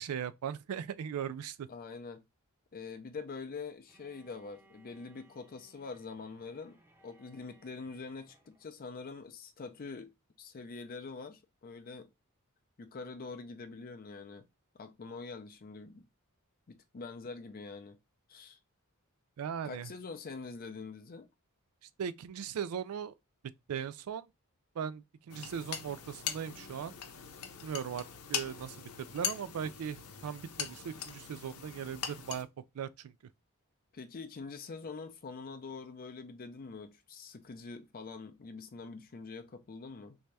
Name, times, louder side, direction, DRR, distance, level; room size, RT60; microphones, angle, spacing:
voice 1, 0.0-1.7 19.4-19.9 22.0-23.1 23.7-24.3 24.8-26.9 27.6-32.5 32.7-33.1, right 8 dB, 80° right, 0.4 m, -38 dB
voice 2, 1.7-2.2 2.7-6.8 7.0-10.1 10.4-12.1 12.8-14.5 14.7-16.1 16.7-18.0 18.3-18.6 19.6-21.3 33.9-40.2, left 4 dB, 40° left, 0.4 m, -45 dB
Bowed string instrument, 3.9-8.7, right 2 dB, 10° right, 0.7 m, -65 dB
sound 1, 25.3-32.4, left 8 dB, 90° left, 0.7 m, -41 dB
3.3 x 2.7 x 3.1 m
head